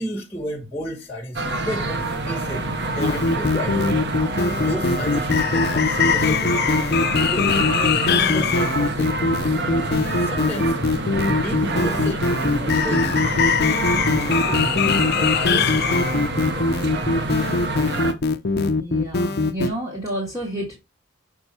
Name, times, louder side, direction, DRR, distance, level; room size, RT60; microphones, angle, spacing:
voice 1, 0.0-18.0, equal, 10° left, 1.3 m, -34 dB
sound 1, 1.4-18.1, right 2 dB, 55° right, 1.0 m, -27 dB
sound 2, 3.0-19.7, left 4 dB, 50° left, 0.6 m, -21 dB
voice 2, 18.8-20.8, right 1 dB, 15° right, 1.9 m, -30 dB
7.1 x 4.6 x 4.3 m
head